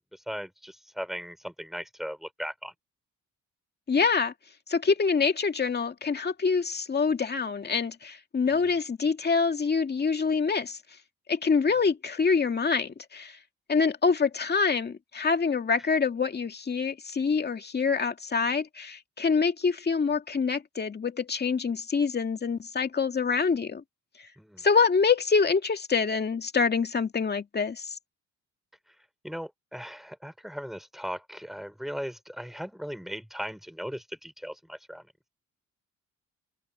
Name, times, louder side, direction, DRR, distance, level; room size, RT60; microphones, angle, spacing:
voice 1, 0.1-2.7 8.6-8.7 24.4-24.7 28.9-29.0 29.2-35.1, equal, ahead, 3.9 m, -38 dB
voice 2, 3.9-4.3 4.7-10.8 11.3-13.4 13.7-23.8 24.6-28.0, left 5 dB, 35° left, 2.3 m, -26 dB
cardioid pair, 90°, 30 cm